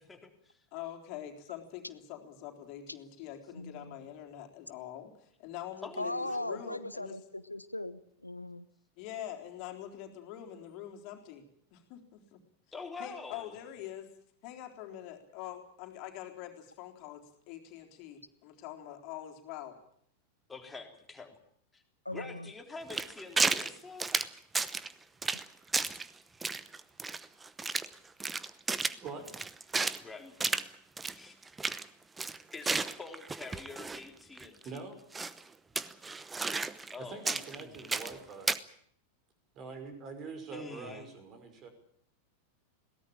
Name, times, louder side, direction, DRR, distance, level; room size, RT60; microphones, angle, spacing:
voice 1, 0.0-0.7 5.8-6.8 12.7-13.6 20.5-21.4 21.7-21.8 22.1-24.2 30.0-30.3 31.0-31.4 32.5-34.8 36.9-37.2 37.6-37.9 40.5-41.1, left 4 dB, 10° left, 3.7 m, -46 dB
voice 2, 0.7-6.1 6.4-7.1 9.0-11.5 11.7-12.4 13.0-14.1 14.4-19.8, left 11 dB, 40° left, 3.9 m, -44 dB
voice 3, 3.5-4.0 6.0-8.7 22.0-22.5, left 1 dB, 85° left, 0.9 m, -38 dB
sound 1, 22.9-23.7 24.0-24.9 25.2-25.5 25.7-26.1 26.4-27.9 28.2-30.0 30.4-30.7 31.0-31.1 31.4-31.8 32.2-34.0 34.4-34.5 35.1-35.4 35.8-37.0 37.3-38.2 38.5-38.6, right 4 dB, 10° right, 0.9 m, -32 dB
voice 4, 29.0-29.3 34.6-35.0 37.0-38.6 39.5-41.7, right 4 dB, 30° right, 5.5 m, -44 dB
22.0 x 18.0 x 8.9 m
figure-of-eight pair, 90°, 0 cm